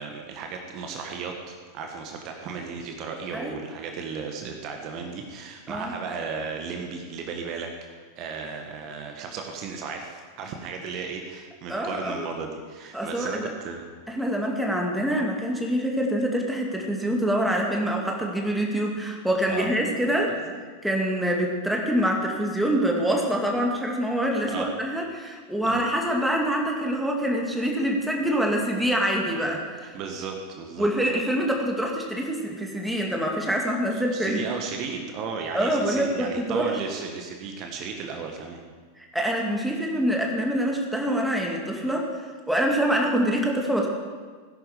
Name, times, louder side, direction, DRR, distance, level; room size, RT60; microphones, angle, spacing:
voice 1, 0.0-13.9 19.5-19.7 20.3-20.6 24.5-24.7 25.6-25.8 29.9-30.9 33.9-38.6, right 5 dB, 40° right, 3 dB, 1.6 m, -35 dB
voice 2, 11.7-12.3 12.9-13.5 14.1-20.3 20.8-29.9 30.8-34.4 35.5-36.7 39.0-42.1 42.5-43.9, equal, ahead, 0 dB, 2.4 m, -25 dB
17.5 x 11.0 x 5.2 m, 1.5 s
figure-of-eight pair, 90°, 0 cm